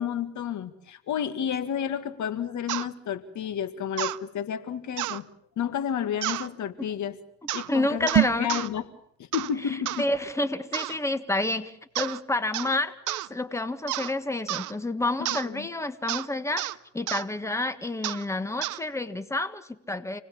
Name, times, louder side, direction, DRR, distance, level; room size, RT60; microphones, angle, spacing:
voice 1, 0.0-5.3 5.6-7.2 7.5-8.1 8.4-8.8 9.2-10.1 15.2-15.7, left 9 dB, 70° left, 11 dB, 1.9 m, -31 dB
sound 1, 2.7-2.9 4.0-4.2 5.0-5.2 6.2-6.5 7.5-7.7 8.1-8.7 9.3-9.5 9.9-10.0 10.7-11.0 12.0-12.2 12.5-12.8 13.1-13.3 13.9-14.1 14.5-14.7 15.3-15.5 16.1-16.3 16.6-16.8 17.1-17.3 18.0-18.2 18.6-18.8, right 15 dB, 80° right, 0.9 m, -31 dB
voice 2, 7.7-8.6 9.6-20.2, left 2 dB, 10° left, 10 dB, 1.7 m, -29 dB
sound 2, 8.0-8.6, right 11 dB, 60° right, 1.4 m, -23 dB
28.5 x 19.5 x 7.3 m, 0.70 s
cardioid pair, 90°, 30 cm